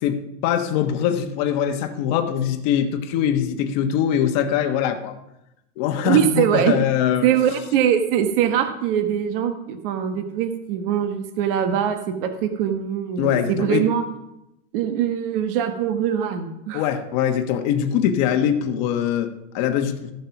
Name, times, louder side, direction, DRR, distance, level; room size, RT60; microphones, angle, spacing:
voice 1, 0.0-5.2 5.8-7.3 13.2-13.9 16.7-20.1, left 9 dB, 35° left, 6 dB, 1.2 m, -22 dB
voice 2, 6.0-6.8 7.2-14.0 14.7-16.9, right 9 dB, 45° right, 7 dB, 1.2 m, -22 dB
14.5 x 7.5 x 5.9 m, 0.87 s
supercardioid pair, 165°, 37 cm